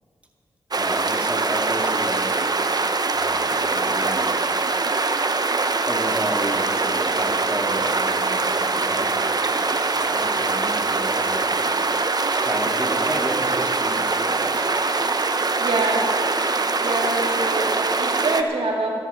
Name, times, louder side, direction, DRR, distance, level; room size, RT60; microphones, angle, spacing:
sound 1, 0.7-18.4, right 3 dB, 45° right, 0.9 m, -23 dB
voice 1, 0.8-2.4 3.1-4.3 5.9-9.2 9.9-11.6 12.3-14.7, right 1 dB, 15° right, 0 dB, 2.4 m, -32 dB
voice 2, 15.6-16.1 16.8-19.1, right 2 dB, 80° right, -1 dB, 2.2 m, -25 dB
14.0 x 12.5 x 5.8 m, 2.4 s
cardioid pair, 50°, 10 cm